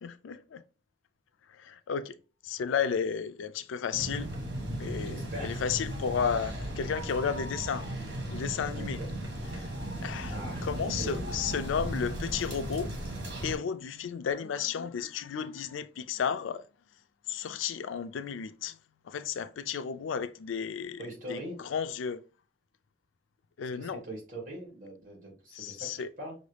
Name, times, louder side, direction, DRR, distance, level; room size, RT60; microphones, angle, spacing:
voice 1, 0.0-0.6 1.5-2.1 2.4-4.3 4.8-7.8 8.3-9.0 9.5-9.7 10.0-12.9 13.4-16.6 17.3-18.8 19.1-21.0 21.3-22.2 23.6-24.0 25.5-26.1, left 7 dB, 85° left, 0.4 m, -33 dB
sound 1, 3.9-13.6, right 1 dB, 60° right, 1.4 m, -36 dB
voice 2, 5.0-5.6 8.7-9.1 10.3-10.7 11.0-11.2 21.0-21.6 23.6-25.9 26.2-26.4, right 1 dB, 45° right, 1.7 m, -41 dB
5.5 x 2.6 x 3.3 m
head